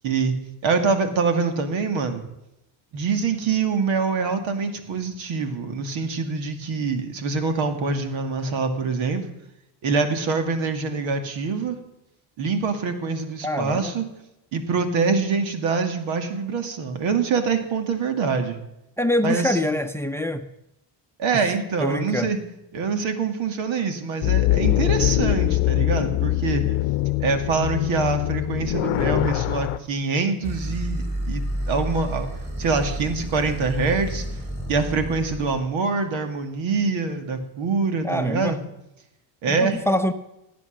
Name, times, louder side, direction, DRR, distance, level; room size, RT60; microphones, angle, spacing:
voice 1, 0.0-0.4 0.6-2.2 2.9-9.2 9.8-11.8 12.4-14.0 14.5-18.6 19.2-19.6 21.2-22.4 22.7-26.6 27.2-32.3 32.6-34.2 34.7-38.6 39.4-39.9, right 4 dB, 70° right, 7 dB, 2.3 m, -25 dB
voice 2, 13.4-13.9 19.0-20.5 21.3-22.3 38.0-38.6 39.5-40.1, left 1 dB, 5° left, 10 dB, 0.8 m, -25 dB
sound 1, 24.2-29.8, left 16 dB, 75° left, 0.8 m, -23 dB
sound 2, 30.4-35.6, equal, 15° right, 7.2 m, -30 dB
17.5 x 8.5 x 6.6 m, 0.89 s
supercardioid pair, 90°, 48 cm